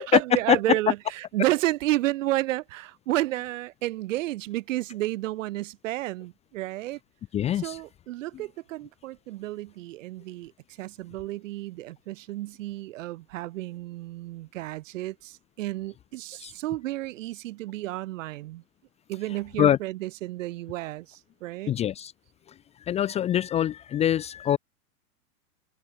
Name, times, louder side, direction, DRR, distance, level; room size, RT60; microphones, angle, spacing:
voice 1, 0.0-7.0 7.5-10.5 10.8-18.6 19.1-21.7, right 16 dB, 55° right, 2.5 m, -31 dB
voice 2, 7.3-7.8 16.4-16.5 19.6-19.8 21.7-22.1 22.9-24.6, left 11 dB, 15° left, 0.8 m, -24 dB
supercardioid pair, 160°, 46 cm